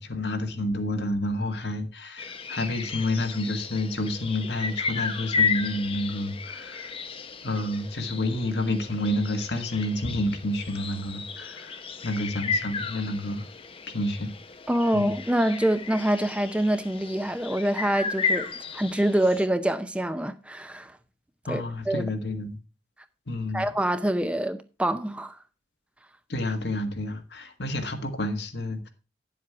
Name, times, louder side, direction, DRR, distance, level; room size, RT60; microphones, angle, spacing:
voice 1, 0.0-6.9 7.4-13.5 13.9-14.3 14.9-15.1 21.5-22.6 23.3-23.7 26.3-28.9, left 1 dB, 65° left, 1.6 m, -29 dB
sound 1, 2.2-19.5, left 5 dB, 30° left, 0.7 m, -33 dB
voice 2, 14.7-20.9 21.5-22.0 23.5-25.4, right 1 dB, 5° right, 0.5 m, -26 dB
9.7 x 7.5 x 4.6 m
head